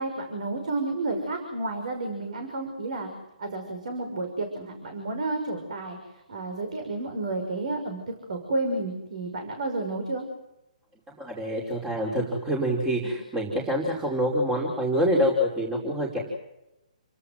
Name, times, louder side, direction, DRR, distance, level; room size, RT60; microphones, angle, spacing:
voice 1, 0.0-3.1 3.4-10.2, right 2 dB, 60° right, 5 dB, 6.0 m, -31 dB
voice 2, 11.1-16.2, equal, 15° right, -1 dB, 5.3 m, -26 dB
29.5 x 18.5 x 7.8 m, 0.91 s
figure-of-eight pair, 140°, 4 cm